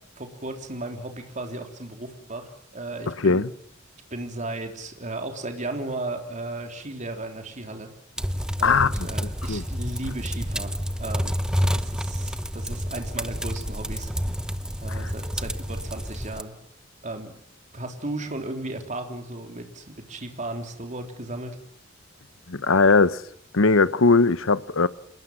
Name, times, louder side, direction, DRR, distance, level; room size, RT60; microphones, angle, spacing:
voice 1, 0.2-3.5 4.1-7.9 8.6-14.1 14.8-16.5 17.0-17.3 17.7-21.6, right 2 dB, 40° right, 3.6 m, -35 dB
voice 2, 3.1-3.5 8.6-9.1 9.5-9.6 14.9-15.1 22.5-23.2 23.5-24.9, left 4 dB, 80° left, 1.0 m, -20 dB
sound 1, 8.2-16.4, equal, 5° right, 0.9 m, -29 dB
27.0 x 21.5 x 7.5 m
head